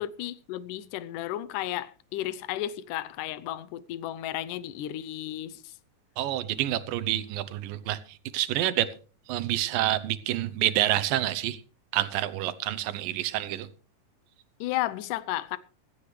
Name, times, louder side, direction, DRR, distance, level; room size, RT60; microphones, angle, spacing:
voice 1, 0.0-5.7 14.6-15.6, left 13 dB, 75° left, 2.1 m, -33 dB
voice 2, 6.2-8.0 8.3-8.9 9.3-11.6 11.9-13.7, right 13 dB, 80° right, 2.5 m, -28 dB
16.0 x 15.5 x 3.2 m
omnidirectional pair, 4.1 m